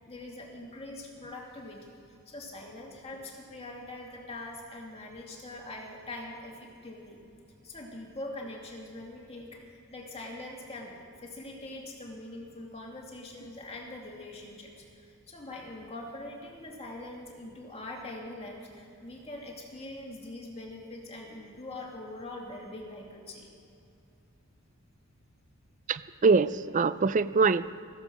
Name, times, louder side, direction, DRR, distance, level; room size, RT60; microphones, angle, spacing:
voice 1, 0.1-2.0 2.3-7.2 7.6-23.5, left 2 dB, 25° left, -1 dB, 2.4 m, -43 dB
voice 2, 25.9-27.7, right 4 dB, 35° right, 15 dB, 0.4 m, -24 dB
15.0 x 14.5 x 6.0 m, 2.6 s
head